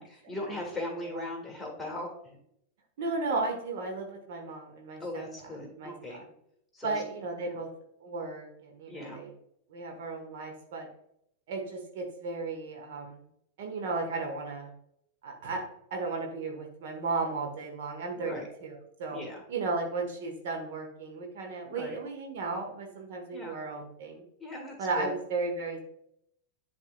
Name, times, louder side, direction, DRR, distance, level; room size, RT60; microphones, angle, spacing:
voice 1, 0.0-2.4 5.0-6.2 6.7-7.0 7.5-7.6 8.9-9.2 18.2-18.5 19.1-19.4 21.7-22.0 23.3-23.6 24.4-25.1, left 1 dB, 5° left, 0 dB, 2.0 m, -39 dB
voice 2, 3.0-5.5 5.8-6.2 6.8-7.7 8.0-9.3 9.7-10.9 11.5-13.2 13.6-14.7 15.2-19.2 19.5-24.2 24.8-25.8, right 3 dB, 55° right, 2 dB, 1.1 m, -35 dB
11.0 x 3.6 x 2.4 m, 0.73 s
figure-of-eight pair, 90°, 0 cm